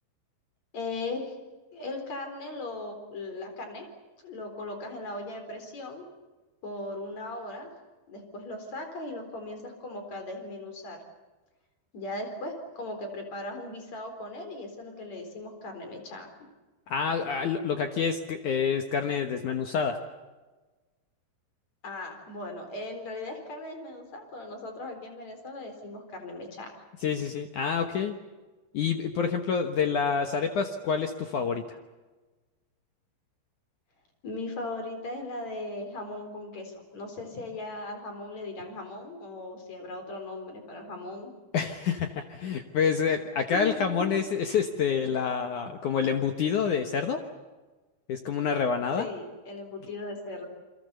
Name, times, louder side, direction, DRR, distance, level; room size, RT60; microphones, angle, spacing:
voice 1, 0.7-1.3 1.7-3.8 4.2-6.0 6.6-7.7 8.1-11.0 11.9-16.3 21.8-26.7 34.2-41.3 43.5-44.2 49.0-50.5, left 2 dB, 40° left, 5 dB, 5.0 m, -38 dB
voice 2, 16.9-20.0 27.0-28.2 28.7-31.8 41.5-47.2 48.1-49.1, left 6 dB, 70° left, 6 dB, 1.9 m, -27 dB
28.5 x 24.0 x 6.9 m, 1.2 s
omnidirectional pair, 5.3 m